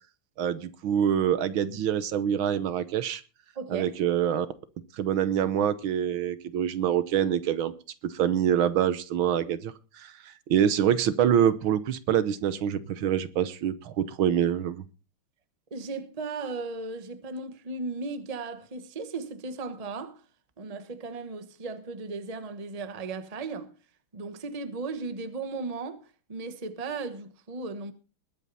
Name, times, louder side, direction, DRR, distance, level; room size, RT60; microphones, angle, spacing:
voice 1, 0.4-3.2 3.7-4.5 4.9-7.7 8.0-14.8, right 9 dB, 70° right, 1.6 m, -25 dB
voice 2, 3.5-4.0 15.7-20.2 20.6-23.7 24.1-26.0 26.3-27.9, right 3 dB, 25° right, 1.0 m, -36 dB
21.0 x 8.8 x 4.1 m
omnidirectional pair, 2.4 m